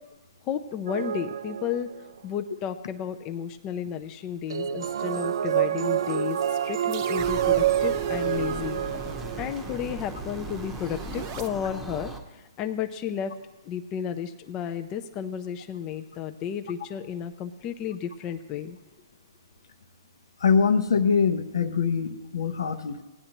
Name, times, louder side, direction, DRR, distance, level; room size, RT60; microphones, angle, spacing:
voice 1, 0.4-1.9 2.2-8.8 9.4-13.3 13.6-18.8, left 8 dB, 25° left, 7 dB, 0.5 m, -33 dB
sound 1, 0.9-2.2 4.5-9.8, right 10 dB, 75° right, 0.3 m, -27 dB
sound 2, 6.2-11.5, right 9 dB, 45° right, 0.8 m, -41 dB
sound 3, 7.2-12.2, right 2 dB, 5° right, 0.9 m, -39 dB
voice 2, 20.4-23.0, left 6 dB, 80° left, 10 dB, 0.8 m, -23 dB
17.5 x 9.8 x 2.9 m, 1.1 s
hypercardioid pair, 145°, 2 cm